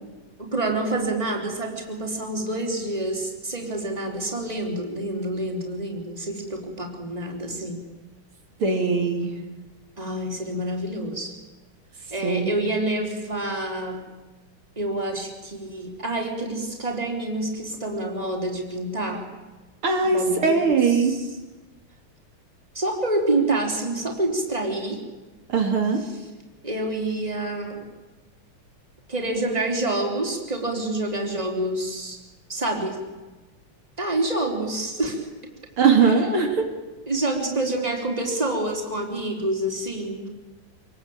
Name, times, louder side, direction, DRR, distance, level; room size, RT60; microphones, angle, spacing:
voice 1, 0.4-7.8 10.0-11.3 12.1-14.0 14.8-19.3 20.1-20.6 20.9-21.3 22.7-25.0 26.0-26.2 26.6-27.9 29.1-32.2 32.5-33.0 34.0-35.3 36.0-36.3 37.1-40.3, right 2 dB, 15° right, 2 dB, 4.1 m, -27 dB
voice 2, 8.6-9.3 12.2-12.5 19.8-21.1 25.5-26.0 35.8-36.6, right 5 dB, 75° right, 3 dB, 3.5 m, -20 dB
27.0 x 20.0 x 8.8 m, 1.2 s
omnidirectional pair, 2.4 m